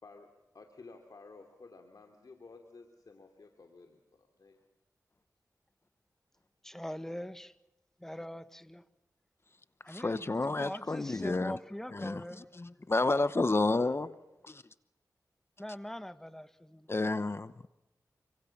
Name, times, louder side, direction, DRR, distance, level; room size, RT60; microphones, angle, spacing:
voice 1, 0.0-4.6 13.7-14.2, left 3 dB, 70° left, 4 dB, 3.0 m, -53 dB
voice 2, 6.6-7.6 8.0-8.8 9.8-12.5 15.6-16.9, equal, 5° left, 12 dB, 1.4 m, -43 dB
voice 3, 9.9-11.6 11.9-12.2 12.9-14.1 16.9-17.7, left 2 dB, 40° left, 13 dB, 0.9 m, -30 dB
29.0 x 26.5 x 7.4 m, 0.91 s
cardioid pair, 55°, 7 cm